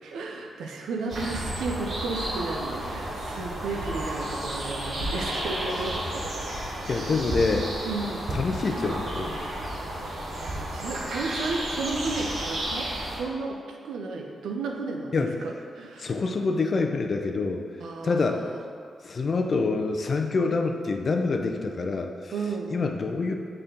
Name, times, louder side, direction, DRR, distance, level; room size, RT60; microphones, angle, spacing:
voice 1, 0.0-6.5 6.9-7.1 7.9-8.2 10.0-16.1 17.8-18.6 22.3-22.7, right 3 dB, 90° right, 2 dB, 0.6 m, -34 dB
sound 1, 1.1-13.2, right 1 dB, 70° right, 1.3 m, -32 dB
voice 2, 6.9-7.7 8.3-9.4 15.1-15.4 16.0-17.6 18.0-18.5 19.0-22.3 22.7-23.3, left 3 dB, 55° left, 4 dB, 0.6 m, -26 dB
6.6 x 4.4 x 3.8 m, 2.1 s
cardioid pair, 55°, 0 cm